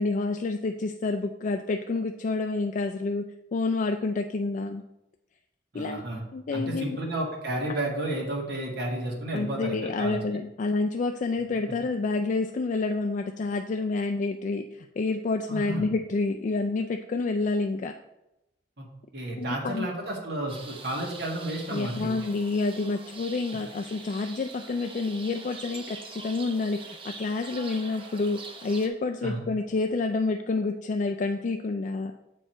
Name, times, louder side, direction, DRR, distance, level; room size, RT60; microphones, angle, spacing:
voice 1, 0.0-4.8 5.7-6.0 6.3-7.0 9.3-17.9 19.4-19.9 21.7-32.1, left 3 dB, 45° left, 4 dB, 0.3 m, -28 dB
voice 2, 5.7-6.2 6.5-10.2 15.5-15.9 18.8-18.9 19.1-22.3 29.2-29.5, right 1 dB, 65° right, -2 dB, 1.7 m, -32 dB
sound 1, 20.5-28.9, right 4 dB, 30° right, 0.8 m, -44 dB
7.2 x 4.5 x 4.4 m, 0.90 s
head